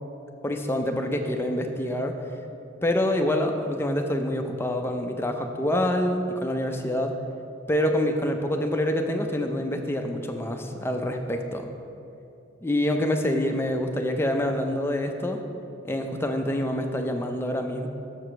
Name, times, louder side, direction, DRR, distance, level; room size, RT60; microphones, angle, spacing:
voice 1, 0.4-2.2 2.8-7.2 7.7-11.7 12.6-15.4 15.8-17.9, left 1 dB, 10° left, 4 dB, 0.4 m, -26 dB
6.7 x 4.8 x 6.1 m, 2.8 s
head